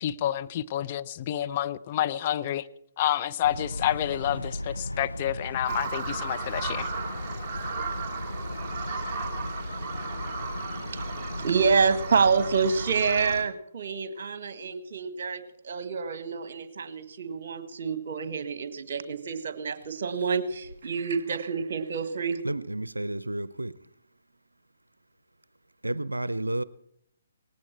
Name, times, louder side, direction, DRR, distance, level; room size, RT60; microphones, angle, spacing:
voice 1, 0.0-2.7 3.0-6.9, left 12 dB, 35° left, 0.5 m, -29 dB
sound 1, 3.4-13.5, left 1 dB, 90° left, 0.5 m, -36 dB
Bird vocalization bird call bird song, 5.7-13.4, right 4 dB, 25° right, 2.4 m, -36 dB
voice 2, 11.3-22.4, right 5 dB, 50° right, 1.5 m, -27 dB
voice 3, 22.4-23.8 25.8-26.6, right 1 dB, 85° right, 0.5 m, -31 dB
19.0 x 16.0 x 4.5 m
figure-of-eight pair, 135°, 0 cm